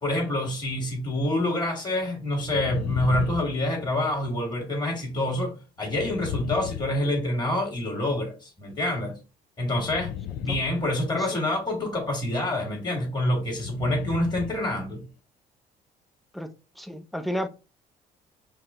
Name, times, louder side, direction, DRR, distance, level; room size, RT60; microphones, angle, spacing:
voice 1, 0.0-9.1 9.6-10.1 10.4-15.0, left 1 dB, 25° left, 1.8 m, -27 dB
sound 1, 2.4-4.3 5.8-7.7 9.8-11.5 13.5-14.8 15.0-15.1, left 10 dB, 65° left, 0.5 m, -36 dB
voice 2, 16.3-17.5, equal, ahead, 0.4 m, -32 dB
4.6 x 2.0 x 3.6 m
cardioid pair, 110°, 17 cm